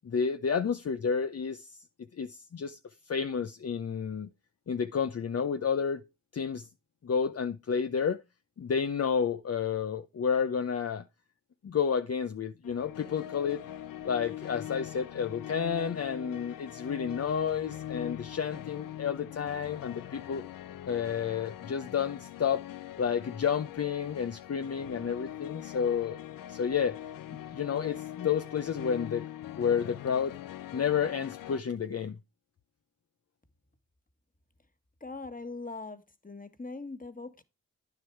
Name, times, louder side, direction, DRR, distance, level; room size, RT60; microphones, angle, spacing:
voice 1, 0.0-1.7 2.2-2.8 3.1-4.3 4.7-6.0 6.3-6.7 7.0-8.2 8.6-11.0 11.6-13.6 14.0-20.4 20.9-22.6 23.0-26.2 26.5-27.0 27.3-29.2 29.6-30.3 30.7-32.2, left 7 dB, 50° left, 0.7 m, -30 dB
sound 1, 12.6-31.6, left 12 dB, 90° left, 0.5 m, -42 dB
voice 2, 35.0-37.4, left 3 dB, 25° left, 1.6 m, -41 dB
9.7 x 6.7 x 4.5 m
cardioid pair, 45°, 33 cm